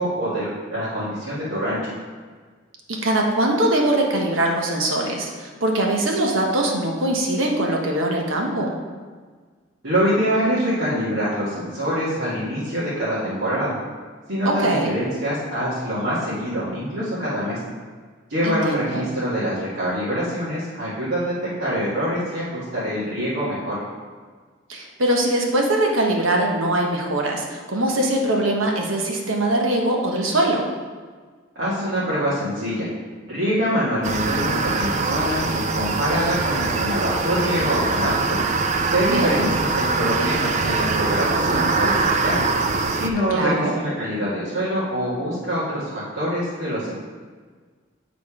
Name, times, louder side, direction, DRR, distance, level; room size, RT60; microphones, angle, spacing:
voice 1, 0.0-1.9 9.8-13.8 14.3-17.6 18.3-23.8 31.6-32.9 33.3-38.4 38.9-42.4 43.0-46.9, equal, 70° right, -11 dB, 2.0 m, -25 dB
voice 2, 2.9-8.8 14.4-14.9 18.4-19.0 24.7-30.7 39.1-39.5 43.3-43.7, right 1 dB, 90° right, 0 dB, 1.2 m, -22 dB
sound 1, 34.0-43.1, right 3 dB, 35° right, 0.4 m, -23 dB
8.5 x 4.1 x 4.9 m, 1.5 s
head